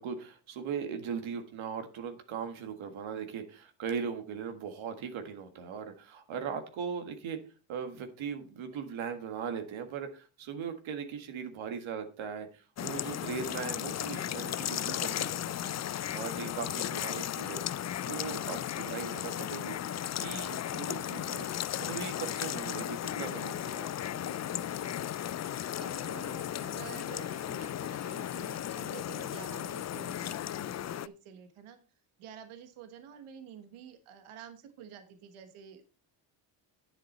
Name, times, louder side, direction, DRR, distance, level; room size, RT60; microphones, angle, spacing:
voice 1, 0.0-7.4 7.7-17.6 18.1-19.8 20.2-21.5 21.8-24.9, right 6 dB, 70° right, 6 dB, 1.7 m, -39 dB
sound 1, 12.8-31.1, left 11 dB, 35° left, 0.4 m, -35 dB
voice 2, 25.8-31.8 32.2-35.8, right 8 dB, 85° right, 9 dB, 1.4 m, -49 dB
10.0 x 7.8 x 4.2 m, 0.34 s
cardioid pair, 85°, 48 cm